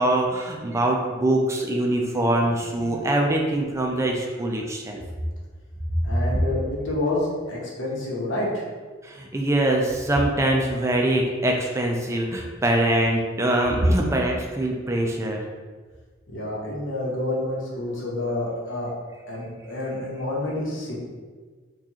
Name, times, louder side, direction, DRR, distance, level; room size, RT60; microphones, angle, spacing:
voice 1, 0.0-5.0 9.0-15.4, right 1 dB, 15° right, 1 dB, 0.3 m, -23 dB
voice 2, 6.0-8.6 16.3-18.9 19.3-21.0, left 1 dB, 80° left, -4 dB, 1.0 m, -28 dB
4.5 x 2.4 x 2.8 m, 1.4 s
head